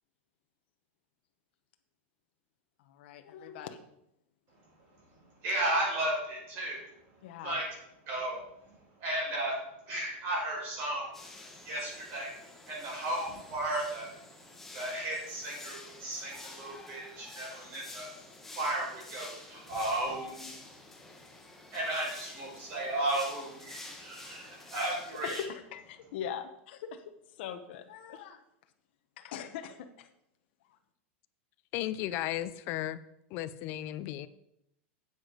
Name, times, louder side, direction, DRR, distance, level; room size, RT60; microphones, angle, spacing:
voice 1, 2.9-3.8 7.2-7.6 25.2-28.4 29.2-30.1, left 8 dB, 55° left, 7 dB, 0.9 m, -41 dB
voice 2, 5.4-6.8 7.4-7.7 8.1-8.5 9.0-9.6 9.9-11.2 11.6-14.1 14.7-18.1 18.5-20.8 21.7-25.4, right 1 dB, 35° right, -2 dB, 5.0 m, -34 dB
sound 1, 11.1-25.5, left 2 dB, 5° left, 1.1 m, -49 dB
voice 3, 31.7-33.0 33.3-34.3, left 14 dB, 35° left, 14 dB, 0.5 m, -35 dB
9.6 x 8.2 x 5.0 m, 0.80 s
supercardioid pair, 170°, 7 cm